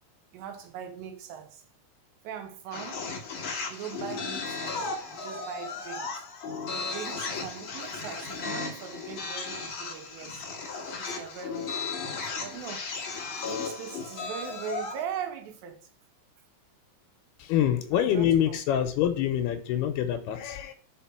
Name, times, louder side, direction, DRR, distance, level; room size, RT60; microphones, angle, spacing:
voice 1, 0.3-1.6 2.2-3.0 3.7-10.4 11.0-12.9 13.5-15.8 17.9-18.6, right 9 dB, 90° right, 3.4 m, -40 dB
sound 1, 2.7-15.0, left 4 dB, 65° left, 1.2 m, -35 dB
voice 2, 17.4-20.7, left 10 dB, 80° left, 2.6 m, -26 dB
6.0 x 5.0 x 5.8 m
omnidirectional pair, 4.9 m